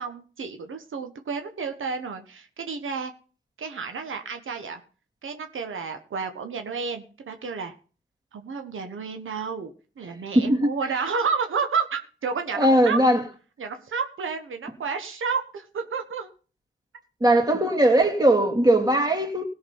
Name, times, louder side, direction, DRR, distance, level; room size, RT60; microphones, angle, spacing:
voice 1, 0.0-3.1 3.6-4.8 5.2-7.7 8.3-13.0 13.6-16.3, right 5 dB, 85° right, 1.4 m, -31 dB
voice 2, 10.3-10.7 12.5-13.2 17.2-19.5, right 1 dB, 20° right, 2.7 m, -19 dB
16.5 x 6.4 x 5.6 m
cardioid pair, 65°, 20 cm